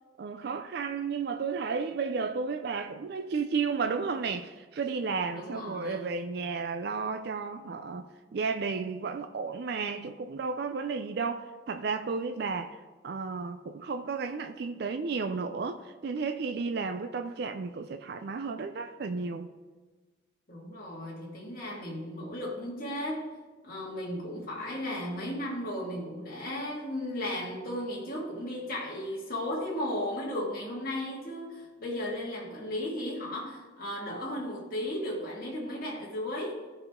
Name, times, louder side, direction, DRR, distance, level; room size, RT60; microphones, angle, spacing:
voice 1, 0.2-8.1 8.3-12.8 13.0-19.5, right 4 dB, 55° right, 0.4 m, -33 dB
voice 2, 5.3-6.1 20.5-23.3 23.6-36.6, left 1 dB, 45° left, 1.9 m, -35 dB
14.5 x 4.9 x 3.6 m
head